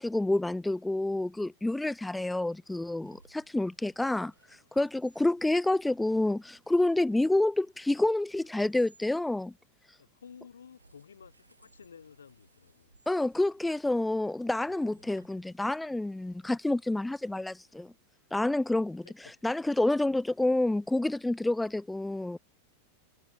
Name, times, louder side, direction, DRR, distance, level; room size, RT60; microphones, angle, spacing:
voice 1, 0.0-9.5 13.1-17.9 18.3-19.0 19.4-22.4, left 2 dB, 5° left, 0.5 m, -28 dB
sound 1, 3.0-9.1 10.7-15.9, right 2 dB, 80° right, 6.5 m, -65 dB
voice 2, 10.0-12.9 14.7-14.8 19.0-19.1, left 7 dB, 70° left, 4.2 m, -53 dB
figure-of-eight pair, 90°, 0 cm